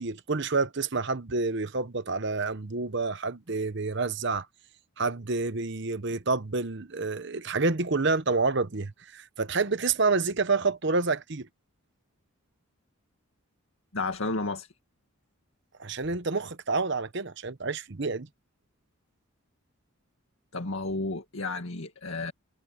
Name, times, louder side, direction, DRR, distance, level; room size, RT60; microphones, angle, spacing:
voice 1, 0.0-4.5 5.0-11.5 15.8-18.3, right 3 dB, 55° right, 1.0 m, -28 dB
voice 2, 13.9-14.7 20.5-22.3, left 3 dB, 70° left, 2.0 m, -32 dB
head